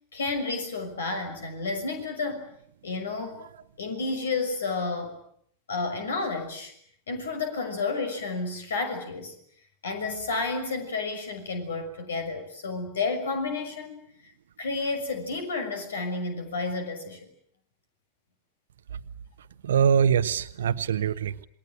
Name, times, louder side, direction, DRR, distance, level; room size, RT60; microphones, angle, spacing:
voice 1, 0.1-2.5 2.8-3.5 3.8-5.2 5.7-6.7 7.1-9.3 9.8-14.0 14.6-17.2, left 3 dB, 65° left, 7 dB, 6.2 m, -31 dB
voice 2, 19.6-21.5, right 8 dB, 65° right, 14 dB, 1.1 m, -23 dB
28.0 x 21.5 x 9.1 m, 0.66 s
figure-of-eight pair, 90°, 0 cm